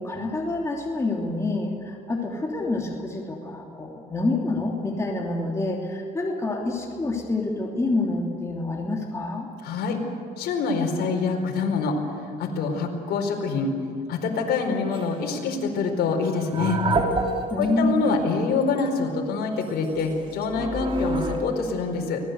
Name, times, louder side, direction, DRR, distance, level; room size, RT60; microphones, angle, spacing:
voice 1, 0.0-9.5 17.5-18.1, left 2 dB, 15° left, -1 dB, 3.2 m, -27 dB
voice 2, 9.6-10.0 10.4-12.0 12.4-13.7 14.1-16.8 17.6-22.2, left 4 dB, 70° left, 1 dB, 4.5 m, -25 dB
sound 1, 14.9-15.2 16.2-17.7 18.0-18.2 18.6-18.9 19.6-21.4, right 2 dB, 30° right, 3.6 m, -28 dB
24.5 x 19.0 x 8.1 m, 2.4 s
cardioid pair, 110°, 17 cm